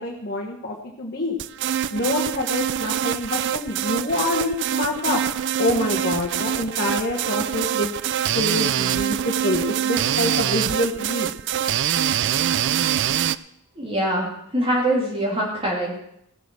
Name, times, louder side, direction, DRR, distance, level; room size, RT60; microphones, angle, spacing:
voice 1, 0.0-1.4 1.9-5.2 5.6-7.9 8.3-11.3, left 2 dB, 45° left, -2 dB, 1.5 m, -26 dB
sound 1, 1.4-13.4, right 10 dB, 55° right, 0.4 m, -24 dB
voice 2, 13.8-16.0, right 1 dB, 25° right, -3 dB, 2.9 m, -23 dB
16.0 x 7.0 x 6.3 m, 0.76 s
head